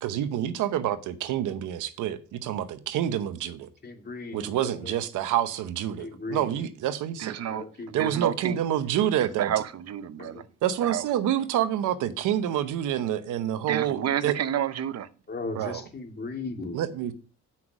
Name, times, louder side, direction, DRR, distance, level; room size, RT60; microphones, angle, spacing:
voice 1, 0.0-3.7 4.3-7.3 7.9-9.5 10.6-14.4 15.5-15.8 16.7-17.1, right 11 dB, 90° right, 0.9 m, -27 dB
voice 2, 3.8-5.0 6.0-6.6 7.5-8.5 10.2-10.4 15.3-16.8, left 3 dB, 35° left, 2.0 m, -37 dB
voice 3, 7.2-8.6 9.2-10.5 10.8-11.1 13.6-15.1, right 10 dB, 55° right, 0.8 m, -30 dB
7.9 x 5.9 x 6.0 m
cardioid pair, 90°, 30 cm